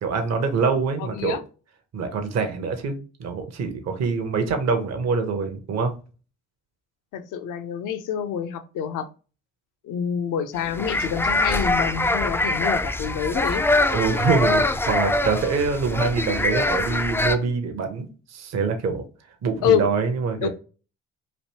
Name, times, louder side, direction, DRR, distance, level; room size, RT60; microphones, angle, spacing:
voice 1, 0.0-1.4 1.9-5.9 13.9-19.0 19.4-20.5, right 5 dB, 45° right, 0.8 m, -25 dB
voice 2, 1.0-1.4 7.1-9.1 9.8-13.6 19.6-19.9 20.4-20.5, left 8 dB, 60° left, 0.6 m, -26 dB
sound 1, 10.6-17.4, left 2 dB, 5° left, 0.3 m, -23 dB
3.2 x 2.6 x 2.8 m
hypercardioid pair, 45°, 36 cm